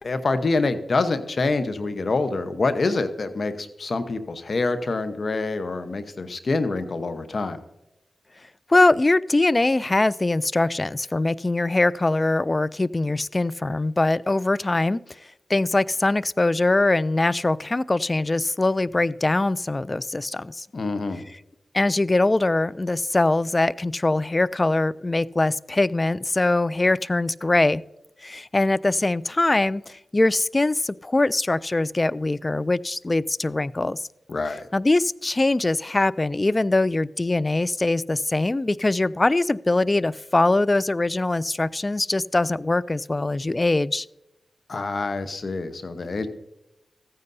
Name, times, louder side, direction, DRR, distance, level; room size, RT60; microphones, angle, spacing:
voice 1, 0.0-7.6 20.7-21.2 34.3-34.7 44.7-46.3, left 3 dB, 60° left, 10 dB, 1.0 m, -26 dB
voice 2, 8.7-15.2 15.5-20.7 21.7-27.8 28.2-34.0 34.7-44.1, left 2 dB, 35° left, 21 dB, 0.3 m, -22 dB
14.5 x 9.5 x 2.7 m, 0.92 s
cardioid pair, 40°, 0 cm